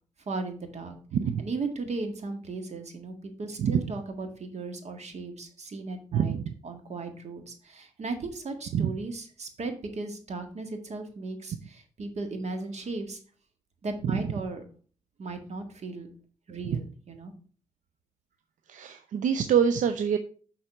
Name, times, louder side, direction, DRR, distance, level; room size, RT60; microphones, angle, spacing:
voice 1, 0.3-1.0 1.4-6.4 6.6-13.2 13.8-14.6 15.2-16.1 16.5-17.3, right 3 dB, 60° right, 6 dB, 1.8 m, -36 dB
voice 2, 1.1-1.4 3.6-3.8 6.1-6.5 8.7-8.9 14.0-14.2 16.6-16.8 18.7-20.2, right 8 dB, 80° right, 9 dB, 0.5 m, -25 dB
6.6 x 4.2 x 5.9 m, 0.42 s
cardioid pair, 60°, 13 cm